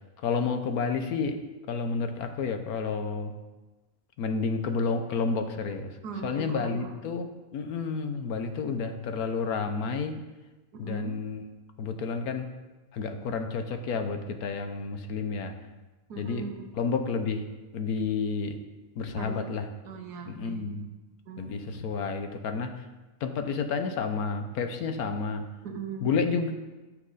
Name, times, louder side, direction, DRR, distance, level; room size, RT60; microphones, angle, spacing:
voice 1, 0.2-1.4 1.7-3.3 4.2-5.9 6.2-7.3 7.5-10.2 10.8-11.4 11.8-12.5 12.9-15.5 16.2-16.4 16.8-17.4 17.7-18.6 19.0-19.7 20.4-20.8 21.4-22.7 23.2-25.4 26.0-26.5, left 5 dB, 70° left, 7 dB, 1.3 m, -30 dB
voice 2, 6.0-6.9 10.7-11.2 16.1-16.7 19.1-19.5 19.8-20.7 21.3-21.6 25.6-26.1, right 5 dB, 90° right, 4 dB, 1.7 m, -39 dB
14.5 x 6.2 x 3.9 m, 1.1 s
omnidirectional pair, 1.7 m